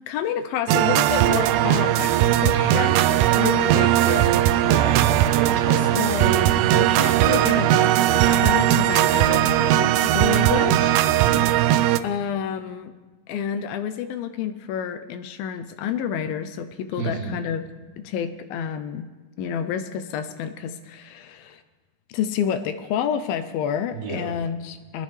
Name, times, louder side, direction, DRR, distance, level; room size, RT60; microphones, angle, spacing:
voice 1, 0.1-4.7 5.7-11.0 12.0-12.9 13.3-17.7 18.0-19.1 19.4-21.6 22.1-25.0, left 8 dB, 80° left, 10 dB, 2.3 m, -29 dB
sound 1, 0.7-12.0, right 13 dB, 80° right, 2.2 m, -19 dB
voice 2, 2.5-2.9 4.5-5.1 5.4-6.0 10.5-11.5 17.0-17.4 23.9-24.2, right 3 dB, 55° right, -7 dB, 4.8 m, -32 dB
20.0 x 12.5 x 3.2 m, 1.4 s
omnidirectional pair, 4.4 m